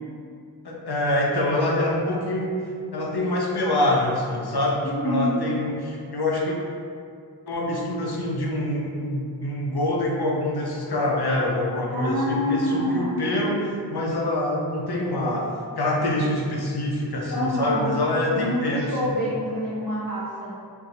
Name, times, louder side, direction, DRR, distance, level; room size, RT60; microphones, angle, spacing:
voice 1, 0.6-2.6 2.9-6.6 7.5-15.5 15.8-19.1, left 1 dB, 65° left, -1 dB, 0.7 m, -25 dB
voice 2, 4.8-5.4 11.9-13.2 17.3-18.0 18.2-20.5, left 1 dB, 45° left, -14 dB, 1.2 m, -26 dB
4.7 x 2.6 x 2.6 m, 2.3 s
wide cardioid pair, 60°, 42 cm